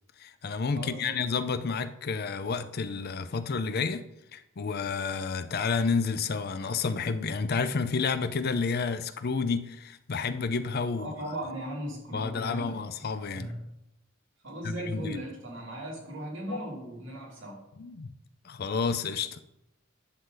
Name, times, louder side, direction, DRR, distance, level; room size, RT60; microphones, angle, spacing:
voice 1, 0.2-4.0 4.3-11.1 12.1-13.5 14.6-15.2 16.5-16.7 17.8-18.1 18.4-19.4, left 5 dB, 50° left, 11 dB, 0.5 m, -30 dB
voice 2, 0.8-1.2 11.0-12.8 13.3-13.6 14.4-17.6, right 1 dB, 65° right, -2 dB, 2.6 m, -37 dB
10.5 x 6.5 x 3.9 m, 0.85 s
head